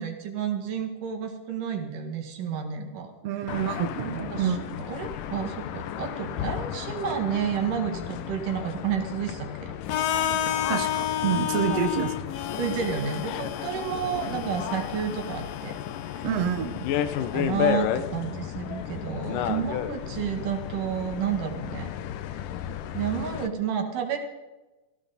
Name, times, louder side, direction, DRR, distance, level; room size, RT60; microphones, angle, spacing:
voice 1, 0.0-3.1 3.5-3.6 4.3-4.6 4.9-9.7 11.7-11.9 12.6-15.8 16.1-16.3 17.2-21.9 22.9-24.2, right 8 dB, 90° right, 2 dB, 3.5 m, -31 dB
voice 2, 3.2-4.8 10.7-12.1 16.2-16.9, right 8 dB, 60° right, 7 dB, 1.9 m, -28 dB
sound 1, 3.5-23.5, left 10 dB, 90° left, 2.5 m, -33 dB
Harmonica, 9.9-17.8, left 11 dB, 65° left, 1.7 m, -32 dB
17.5 x 16.0 x 4.1 m, 1.1 s
omnidirectional pair, 3.7 m